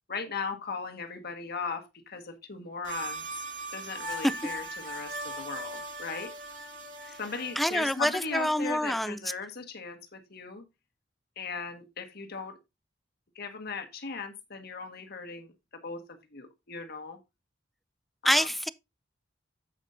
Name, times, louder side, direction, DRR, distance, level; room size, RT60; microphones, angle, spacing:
voice 1, 0.1-3.4 3.7-6.3 7.2-10.6 11.4-12.6 13.3-17.2 18.2-18.5, left 5 dB, 55° left, 1.6 m, -38 dB
sound 1, 2.8-8.7, right 1 dB, 80° right, 2.6 m, -39 dB
voice 2, 7.6-9.2 18.2-18.7, equal, ahead, 0.4 m, -26 dB
9.8 x 8.2 x 2.6 m
head